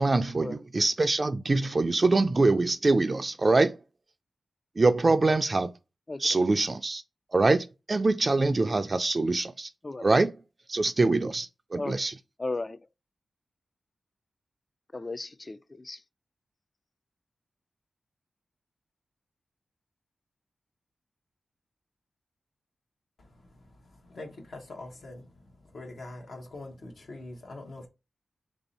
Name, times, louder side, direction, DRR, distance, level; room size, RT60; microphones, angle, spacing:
voice 1, 0.0-3.8 4.8-5.7 6.2-7.0 7.3-9.7 10.0-10.3 10.7-12.1, right 3 dB, 40° right, 0.3 m, -24 dB
voice 2, 6.1-6.4 9.8-10.1 11.8-12.1 12.4-12.8 14.9-16.0, left 2 dB, 35° left, 0.3 m, -36 dB
voice 3, 24.1-25.2 25.7-27.9, left 2 dB, 70° left, 0.9 m, -43 dB
3.1 x 2.7 x 4.0 m
cardioid pair, 50°, 0 cm